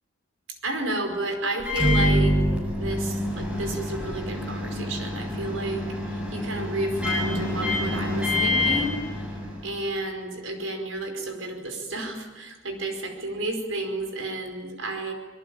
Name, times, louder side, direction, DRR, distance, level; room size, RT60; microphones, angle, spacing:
voice 1, 0.6-9.3 9.6-15.1, right 2 dB, 80° right, 5 dB, 5.0 m, -31 dB
Microwave oven, 1.6-9.8, left 1 dB, 5° right, 7.4 m, -26 dB
25.5 x 22.5 x 8.8 m, 1.3 s
head